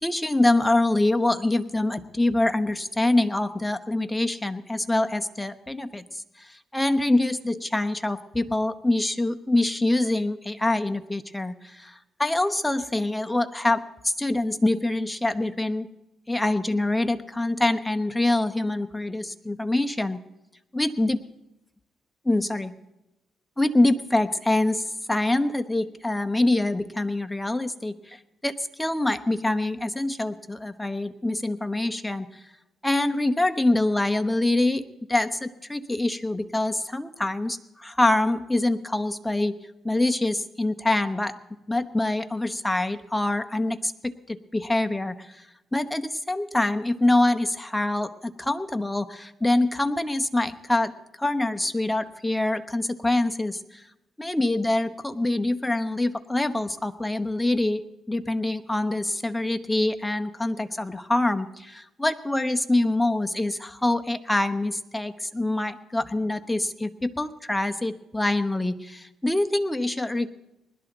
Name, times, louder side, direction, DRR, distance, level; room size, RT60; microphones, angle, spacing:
voice 1, 0.0-15.9 16.3-20.3 20.7-21.2 22.2-22.7 23.6-32.3 32.8-34.8 35.1-39.6 39.8-41.3 41.7-45.5 45.7-50.9 51.2-53.8 54.2-70.3, left 2 dB, 10° left, 7 dB, 1.0 m, -25 dB
20.5 x 12.5 x 3.9 m, 0.92 s
cardioid pair, 90°, 0 cm